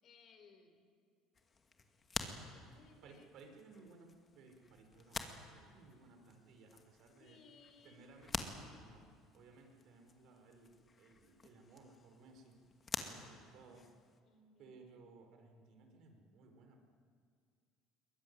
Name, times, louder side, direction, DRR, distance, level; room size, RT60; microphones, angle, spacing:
voice 1, 0.0-0.9 2.5-3.3 7.2-8.1 13.0-13.7 14.2-14.9, left 4 dB, 45° left, 7 dB, 4.0 m, -64 dB
sound 1, 1.3-14.2, left 4 dB, 25° left, 2.3 m, -49 dB
voice 2, 3.0-4.1 4.3-7.4 7.8-9.1 9.3-12.6 13.1-13.9 14.6-16.8, right 3 dB, 60° right, 4 dB, 5.0 m, -60 dB
22.5 x 21.0 x 9.7 m, 2.1 s
cardioid pair, 120°, 0 cm